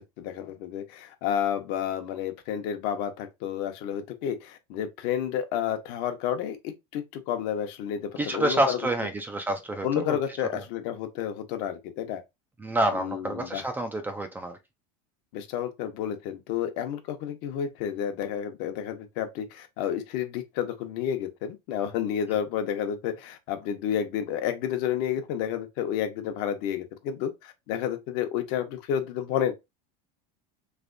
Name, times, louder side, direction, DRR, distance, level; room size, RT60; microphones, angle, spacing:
voice 1, 0.2-8.8 9.8-12.2 12.9-13.6 15.3-29.5, left 9 dB, 60° left, 0.9 m, -30 dB
voice 2, 8.2-10.2 10.5-10.6 12.6-14.6, right 1 dB, 10° right, 0.4 m, -28 dB
3.3 x 3.0 x 2.5 m
supercardioid pair, 140°, 19 cm